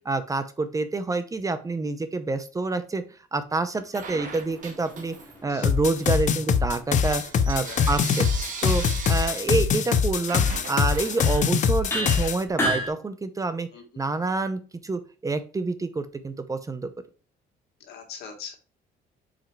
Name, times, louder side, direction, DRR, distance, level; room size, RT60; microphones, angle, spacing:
voice 1, 0.0-3.0 3.3-5.1 5.4-8.3 8.6-13.7 14.0-16.9, right 3 dB, 20° right, 11 dB, 0.6 m, -27 dB
Bell / Coin (dropping), 3.9-5.5 5.8-11.8, right 5 dB, 50° right, 1.3 m, -39 dB
sound 1, 4.0-7.4 10.5-10.6 11.2-11.5 11.9-12.9, equal, 15° left, 2.1 m, -33 dB
sound 2, 5.6-12.4, left 6 dB, 45° left, 0.6 m, -23 dB
voice 2, 7.7-8.0 9.2-9.3 11.8-12.3 13.7-13.8 17.9-18.5, left 7 dB, 75° left, 3 dB, 1.7 m, -41 dB
4.9 x 4.4 x 4.5 m, 0.36 s
cardioid pair, 110°, 17 cm